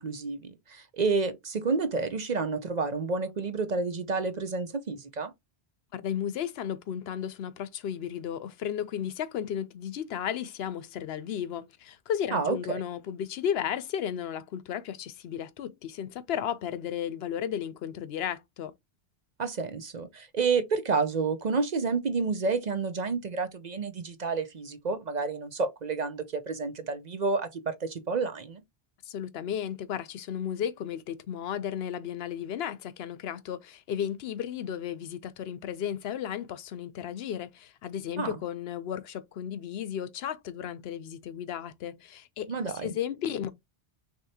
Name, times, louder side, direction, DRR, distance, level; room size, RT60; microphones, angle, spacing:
voice 1, 0.0-5.3 12.3-12.8 19.4-28.6 38.2-38.3 42.5-42.9, right 4 dB, 50° right, 0.7 m, -30 dB
voice 2, 5.9-18.7 29.1-43.5, left 9 dB, 75° left, 0.8 m, -34 dB
6.3 x 2.9 x 2.8 m
omnidirectional pair, 1.1 m